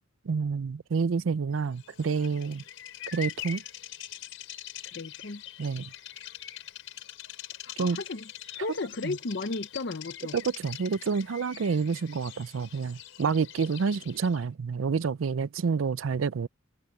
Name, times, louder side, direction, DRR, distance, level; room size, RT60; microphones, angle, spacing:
voice 1, 0.3-2.6 3.1-3.6 5.6-5.9 7.8-8.0 9.0-9.2 10.3-16.5, right 5 dB, 85° right, 0.5 m, -28 dB
Bird vocalization bird call bird song, 1.8-14.5, left 11 dB, 90° left, 5.1 m, -43 dB
voice 2, 4.8-5.4 7.6-8.3 8.6-10.4, left 3 dB, 60° left, 0.7 m, -34 dB
head